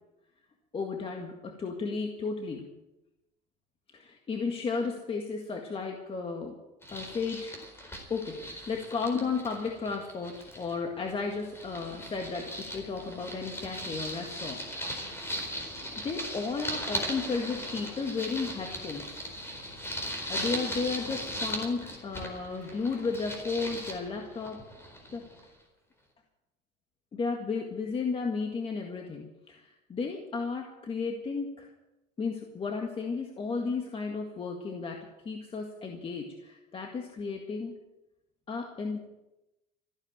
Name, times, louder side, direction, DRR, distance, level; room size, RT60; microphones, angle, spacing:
voice 1, 0.7-2.6 3.9-6.6 6.9-7.6 8.1-15.2 16.0-19.2 20.3-24.6 25.1-25.3 27.1-31.7 32.2-37.8 38.5-39.0, left 4 dB, 25° left, 3 dB, 1.8 m, -34 dB
sound 1, 6.8-10.8 11.1-25.5, equal, 10° left, 4.4 m, -38 dB
sound 2, 9.9-24.8, left 3 dB, 75° left, 6.2 m, -55 dB
14.5 x 11.0 x 7.6 m, 0.97 s
supercardioid pair, 115°, 21 cm